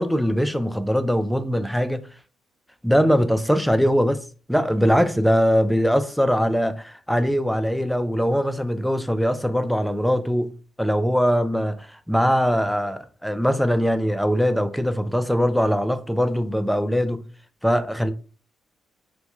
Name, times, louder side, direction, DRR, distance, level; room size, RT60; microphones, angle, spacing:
voice 1, 0.0-2.1 2.8-17.3 17.6-18.1, equal, ahead, 0.3 m, -21 dB
2.1 x 2.1 x 3.0 m
cardioid pair, 90°, 0 cm